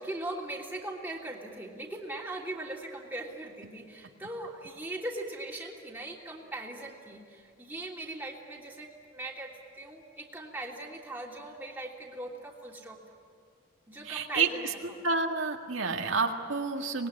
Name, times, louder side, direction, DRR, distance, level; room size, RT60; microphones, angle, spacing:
voice 1, 0.0-9.5 9.8-13.0 13.9-15.0, right 1 dB, 10° right, -2 dB, 3.1 m, -40 dB
voice 2, 14.1-14.5 15.0-17.1, right 4 dB, 80° right, 2 dB, 1.9 m, -29 dB
25.5 x 20.5 x 10.0 m, 2.2 s
head